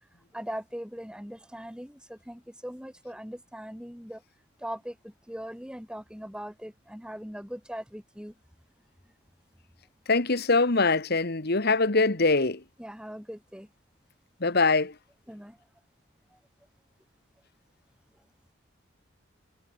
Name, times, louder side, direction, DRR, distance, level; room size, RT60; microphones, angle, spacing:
voice 1, 0.3-4.2 4.6-8.3 12.8-13.7 15.3-15.6 16.3-16.4, equal, 5° right, 4.9 m, -40 dB
voice 2, 10.1-12.6 14.4-14.9, left 3 dB, 50° left, 1.5 m, -23 dB
head